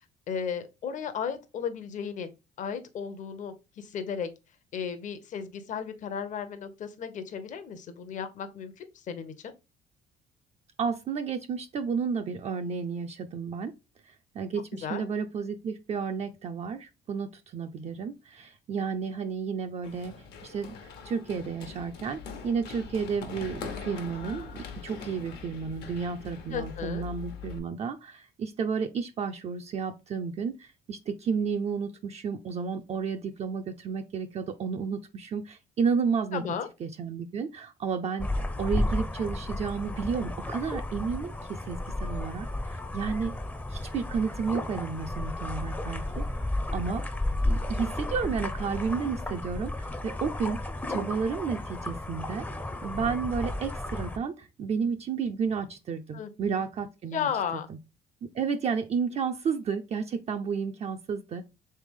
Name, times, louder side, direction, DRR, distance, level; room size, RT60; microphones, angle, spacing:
voice 1, 0.3-2.3 2.6-4.3 4.7-9.5 14.8-15.1 26.5-27.1 36.3-36.7 56.1-56.6 57.1-57.7, left 7 dB, 50° left, 0.7 m, -34 dB
voice 2, 10.8-13.7 14.1-20.1 20.4-20.8 21.0-36.4 36.8-43.3 43.7-46.3 46.7-47.0 47.4-50.6 50.9-52.5 52.8-57.3 58.2-61.4, right 6 dB, 40° right, 0.4 m, -32 dB
Run, 19.8-27.6, left 6 dB, 75° left, 1.0 m, -42 dB
sound 1, 38.2-54.2, left 1 dB, 10° left, 0.5 m, -33 dB
3.5 x 3.3 x 3.4 m
cardioid pair, 110°, 17 cm